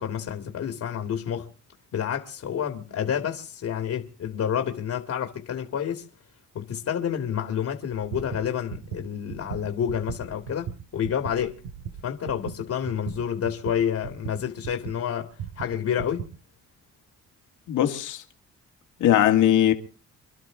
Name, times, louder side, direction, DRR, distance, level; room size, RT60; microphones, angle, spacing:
voice 1, 0.0-1.5 1.9-6.1 6.5-11.6 12.0-15.3 15.6-16.3, left 8 dB, 60° left, 2.0 m, -29 dB
sound 1, 8.1-15.0 15.4-16.3, right 7 dB, 85° right, 1.6 m, -37 dB
voice 2, 17.7-18.2 19.0-19.7, left 11 dB, 80° left, 2.0 m, -20 dB
28.0 x 12.0 x 3.7 m
cardioid pair, 90°, 30 cm